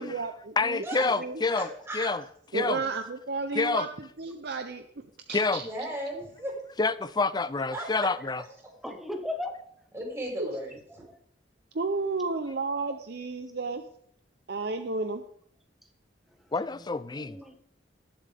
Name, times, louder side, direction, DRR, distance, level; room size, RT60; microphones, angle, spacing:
voice 1, 0.0-1.4 2.5-5.0 5.3-5.7 10.4-10.5 11.7-13.8 14.5-15.2, right 3 dB, 60° right, 0.7 m, -32 dB
voice 2, 0.6-1.7 1.9-2.2 2.5-2.8 3.6-3.8 5.3-5.6 6.8-8.4 16.5-17.4, left 3 dB, 25° left, 0.5 m, -27 dB
voice 3, 1.5-2.1 5.6-6.5 7.7-7.9 9.9-11.0, right 1 dB, 15° right, 5.4 m, -35 dB
voice 4, 8.8-9.6 10.5-10.6 11.1-11.2 16.8-17.6, left 2 dB, ahead, 1.5 m, -37 dB
19.5 x 7.4 x 3.5 m
head